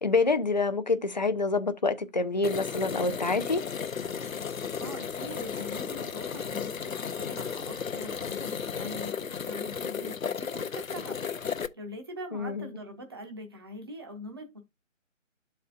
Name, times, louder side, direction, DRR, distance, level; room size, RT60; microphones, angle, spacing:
voice 1, 0.0-3.6 12.3-12.7, left 3 dB, 35° left, 0.4 m, -27 dB
sound 1, 2.4-11.7, left 6 dB, 90° left, 0.6 m, -34 dB
voice 2, 4.8-14.6, equal, 20° right, 0.6 m, -43 dB
12.5 x 4.2 x 2.4 m
figure-of-eight pair, 145°, 39 cm